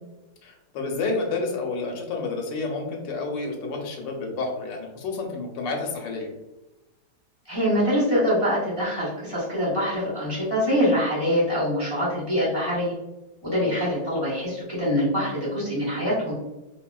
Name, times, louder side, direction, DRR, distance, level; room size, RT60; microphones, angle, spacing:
voice 1, 0.4-6.3 13.6-13.7, left 3 dB, 85° left, 1 dB, 1.3 m, -30 dB
voice 2, 7.5-12.9 13.4-16.3, equal, 30° left, -9 dB, 0.4 m, -24 dB
3.1 x 2.3 x 2.2 m, 1.0 s
omnidirectional pair, 1.9 m